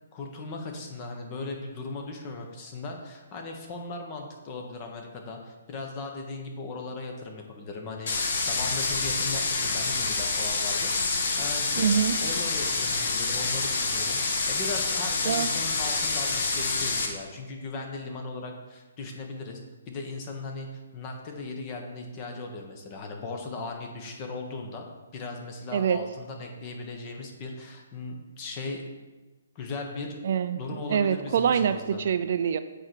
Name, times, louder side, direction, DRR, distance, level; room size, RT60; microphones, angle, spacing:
voice 1, 0.1-8.1 8.4-11.9 12.2-14.2 14.5-19.6 19.9-24.8 25.1-28.8 29.5-30.2 30.5-32.0, left 3 dB, 30° left, 2 dB, 1.3 m, -38 dB
sound 1, 8.1-17.1, left 3 dB, 55° left, 1.1 m, -27 dB
voice 2, 11.8-12.2 15.2-15.5 25.7-26.0 30.2-30.6 30.9-32.6, right 8 dB, 55° right, 10 dB, 0.4 m, -24 dB
7.6 x 4.4 x 4.7 m, 1.2 s
hypercardioid pair, 140°, 0 cm